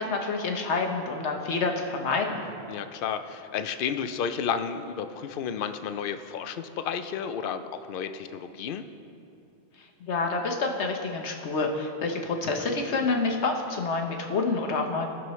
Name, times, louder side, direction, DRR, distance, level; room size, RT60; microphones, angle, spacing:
voice 1, 0.0-2.4 9.8-15.0, left 3 dB, 80° left, 3 dB, 1.2 m, -28 dB
voice 2, 2.7-8.8, left 7 dB, 60° left, 9 dB, 0.7 m, -32 dB
18.0 x 6.1 x 3.1 m, 2.6 s
omnidirectional pair, 1.1 m